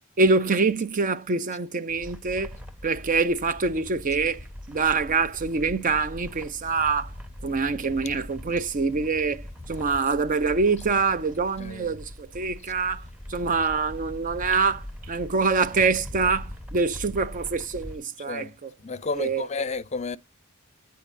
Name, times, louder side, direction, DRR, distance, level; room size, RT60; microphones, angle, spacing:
voice 1, 0.2-2.6 2.8-7.1 7.4-13.0 13.3-18.7 19.1-19.5, right 4 dB, 40° right, 0.5 m, -25 dB
sound 1, 1.9-18.0, left 1 dB, 5° right, 0.9 m, -41 dB
voice 2, 11.6-11.9 18.3-18.5 18.8-20.2, left 4 dB, 30° left, 0.5 m, -31 dB
10.5 x 4.4 x 2.6 m
head